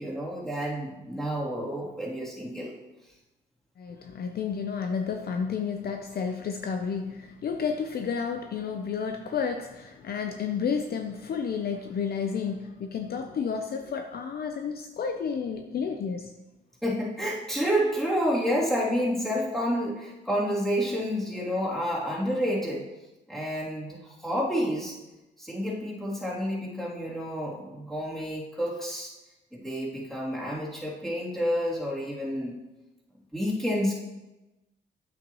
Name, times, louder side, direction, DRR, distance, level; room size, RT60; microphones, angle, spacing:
voice 1, 0.0-2.7 16.8-22.9 23.3-25.0 25.4-29.1 29.5-32.5 33.3-33.9, equal, ahead, -6 dB, 3.0 m, -29 dB
voice 2, 3.8-16.3, left 6 dB, 50° left, 5 dB, 0.7 m, -31 dB
9.1 x 8.1 x 3.1 m, 1.0 s
cardioid pair, 90°, 20 cm